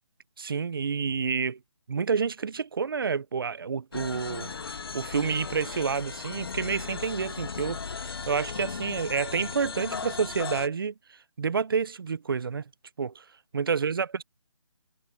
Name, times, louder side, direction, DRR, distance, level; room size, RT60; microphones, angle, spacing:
voice 1, 0.4-1.6 1.9-4.5 4.9-10.9 11.4-12.6 13.0-13.2 13.5-14.2, right 5 dB, 45° right, 0.5 m, -29 dB
sound 1, 3.9-10.7, left 5 dB, 50° left, 1.7 m, -37 dB
hypercardioid pair, 170°, 16 cm